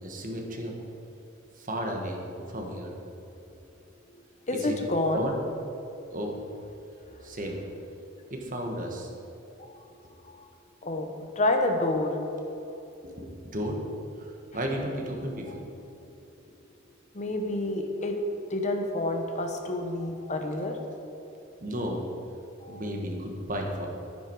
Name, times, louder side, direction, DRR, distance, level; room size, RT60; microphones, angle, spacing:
voice 1, 0.0-0.8 1.6-2.9 4.5-4.8 5.1-5.4 6.1-6.4 7.2-7.6 8.3-9.1 13.0-13.8 14.2-15.7 21.6-22.0 22.7-23.9, equal, 40° right, 1 dB, 1.6 m, -33 dB
voice 2, 4.5-5.3 9.6-9.8 10.2-10.5 10.8-11.1 11.4-12.2 15.5-15.6 17.1-18.2 18.5-20.8 22.6-22.8, left 2 dB, 35° left, 4 dB, 0.9 m, -28 dB
11.0 x 9.8 x 4.7 m, 2.9 s
head